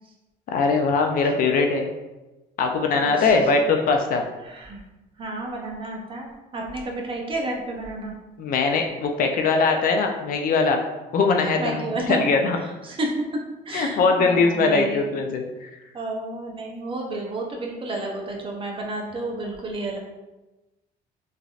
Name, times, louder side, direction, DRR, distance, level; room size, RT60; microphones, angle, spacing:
voice 1, 0.5-1.9 2.6-4.2 8.4-10.8 11.1-11.8 12.1-12.6 13.7-15.7, left 4 dB, 55° left, 4 dB, 0.4 m, -21 dB
voice 2, 2.9-3.3 4.4-4.8 5.2-8.1 11.6-12.2 12.8-13.1 13.7-15.3 15.9-20.0, right 2 dB, 30° right, 0 dB, 0.6 m, -31 dB
3.2 x 2.5 x 2.4 m, 1.1 s
cardioid pair, 110°, 17 cm